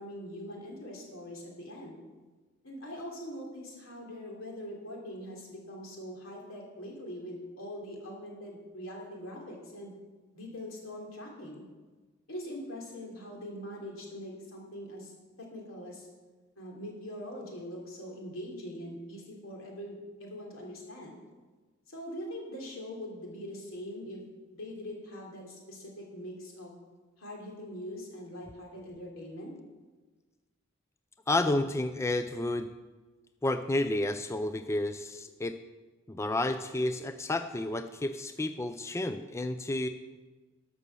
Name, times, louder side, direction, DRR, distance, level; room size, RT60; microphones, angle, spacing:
voice 1, 0.0-2.0 2.6-9.9 10.3-11.7 12.3-15.1 15.4-16.1 16.6-21.2 21.9-24.2 24.5-26.7 27.2-29.5, equal, 80° left, -1 dB, 3.2 m, -42 dB
voice 2, 31.3-32.7 33.4-35.6 36.1-39.9, left 2 dB, 15° left, 9 dB, 0.4 m, -31 dB
12.0 x 6.2 x 6.9 m, 1.3 s
head